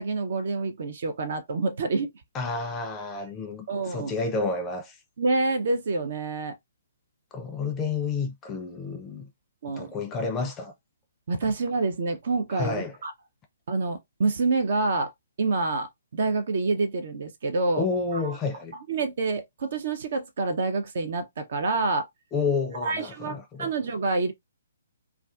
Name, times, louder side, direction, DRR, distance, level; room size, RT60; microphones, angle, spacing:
voice 1, 0.0-2.1 3.7-4.1 5.2-6.6 9.6-9.9 11.3-13.1 13.7-15.1 15.4-17.8 18.1-18.2 18.9-22.1 22.8-24.3, right 3 dB, 55° right, 0.5 m, -27 dB
voice 2, 2.3-5.0 7.3-9.3 9.7-10.7 12.5-12.9 17.8-18.8 22.3-23.7, left 4 dB, 20° left, 0.4 m, -30 dB
2.4 x 2.3 x 2.3 m
figure-of-eight pair, 130°, 0 cm